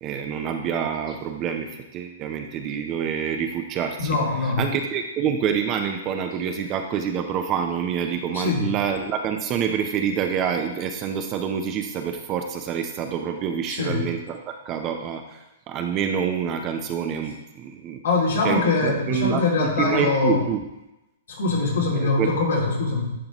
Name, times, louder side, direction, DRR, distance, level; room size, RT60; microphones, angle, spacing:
voice 1, 0.0-4.2 4.6-18.0 18.4-20.6 22.0-22.3, right 7 dB, 30° right, 5 dB, 0.6 m, -27 dB
voice 2, 4.0-4.6 8.3-8.7 13.7-14.0 18.0-20.4 21.3-23.1, left 3 dB, 75° left, -3 dB, 2.5 m, -23 dB
11.0 x 4.0 x 3.0 m, 0.94 s
hypercardioid pair, 140°, 0 cm